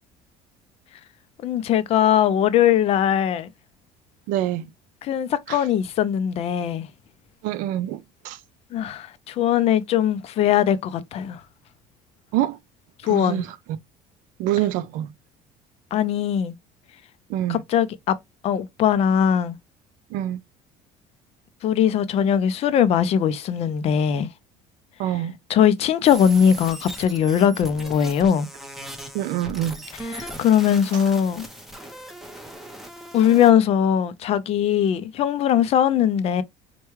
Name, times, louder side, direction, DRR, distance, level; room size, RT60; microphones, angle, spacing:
voice 1, 1.4-3.5 5.0-6.9 8.7-11.4 13.0-13.4 15.9-16.5 17.5-18.1 18.4-19.6 21.6-24.3 25.5-28.5 30.1-31.5 33.1-36.4, left 9 dB, 45° left, 0.5 m, -20 dB
voice 2, 4.3-4.7 5.5-5.6 7.4-8.4 12.3-12.6 13.0-13.8 14.4-15.1 17.3-17.6 20.1-20.4 25.0-25.4 29.1-29.8, right 13 dB, 70° right, 0.5 m, -26 dB
sound 1, 26.0-33.5, right 1 dB, ahead, 0.7 m, -39 dB
4.5 x 2.2 x 3.0 m
cardioid pair, 135°, 14 cm